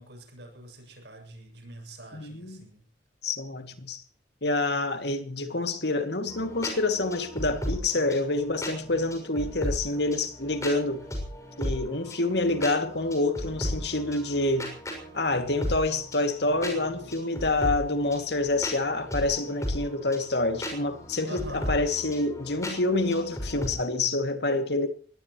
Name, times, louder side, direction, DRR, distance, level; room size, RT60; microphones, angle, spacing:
voice 1, 0.0-2.8 21.3-21.8, right 1 dB, 65° right, 7.5 m, -45 dB
voice 2, 2.1-2.7 3.2-4.0 4.4-11.0 11.6-14.7 15.1-24.9, left 2 dB, 60° left, 2.4 m, -27 dB
sound 1, 6.3-23.7, equal, 15° left, 6.4 m, -36 dB
23.5 x 19.0 x 3.1 m
head